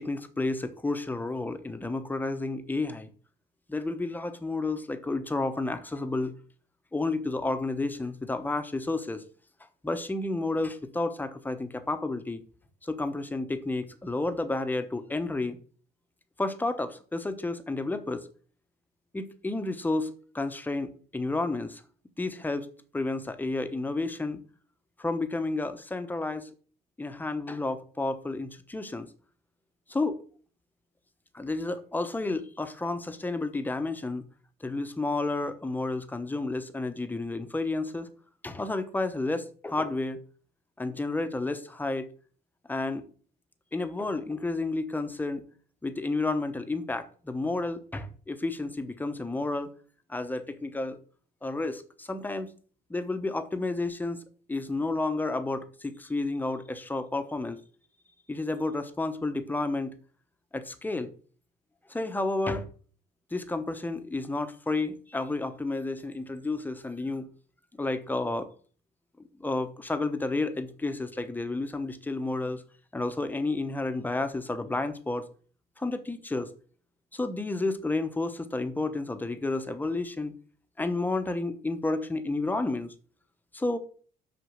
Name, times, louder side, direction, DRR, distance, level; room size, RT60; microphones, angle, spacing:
voice 1, 0.0-3.1 3.7-6.3 6.9-9.2 9.8-12.4 12.8-15.6 16.4-18.3 19.1-21.8 22.2-22.7 22.9-24.4 25.0-26.5 27.0-29.1 29.9-30.2 31.3-34.2 34.6-38.1 38.4-40.2 40.8-42.1 42.7-43.0 43.7-45.4 45.8-49.7 50.1-51.0 51.4-52.5 52.9-54.2 54.5-57.6 58.3-59.9 60.5-61.1 61.9-62.7 63.3-67.3 67.8-68.5 69.4-72.6 72.9-75.3 75.8-76.5 77.1-80.4 80.8-82.9 83.5-83.8, left 2 dB, 10° left, 0.9 m, -31 dB
6.4 x 5.1 x 6.4 m
cardioid pair, 110°, 17 cm